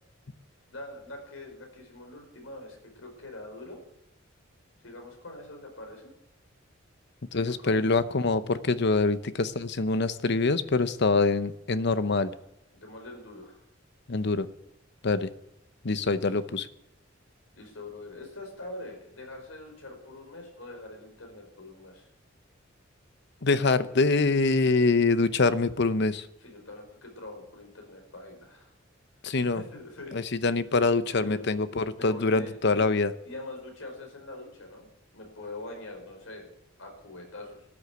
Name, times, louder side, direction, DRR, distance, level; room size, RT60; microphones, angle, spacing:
voice 1, 0.7-3.8 4.8-6.1 7.3-7.9 12.7-13.6 16.0-16.4 17.5-22.1 26.4-28.7 29.5-30.2 31.1-31.5 31.9-32.9 33.2-36.5 36.8-37.7, left 2 dB, 85° left, 3 dB, 4.9 m, -44 dB
voice 2, 7.3-12.3 14.1-14.5 15.0-15.3 15.8-16.7 23.4-26.3 29.2-29.6 30.1-33.1, left 3 dB, 60° left, 13 dB, 0.8 m, -25 dB
13.5 x 9.8 x 8.3 m, 0.82 s
head